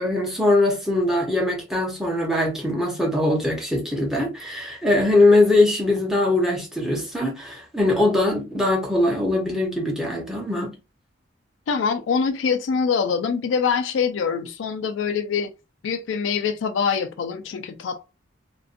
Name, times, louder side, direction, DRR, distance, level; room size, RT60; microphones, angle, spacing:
voice 1, 0.0-10.7, left 2 dB, ahead, 0.7 m, -21 dB
voice 2, 11.7-15.5 15.8-18.1, left 6 dB, 75° left, 0.3 m, -24 dB
2.5 x 2.2 x 2.5 m
head